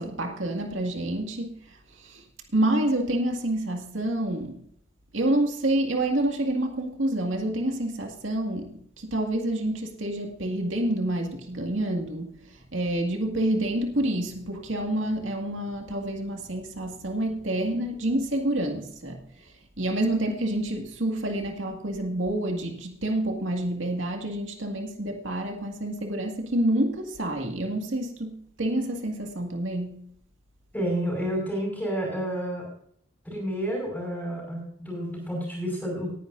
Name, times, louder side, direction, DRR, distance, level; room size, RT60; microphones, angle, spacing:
voice 1, 0.0-2.2 2.5-4.6 5.1-30.1, right 1 dB, 80° right, 2 dB, 2.1 m, -28 dB
voice 2, 30.7-32.7 33.3-36.1, equal, 5° left, -3 dB, 5.2 m, -30 dB
20.0 x 10.0 x 2.6 m, 0.66 s
head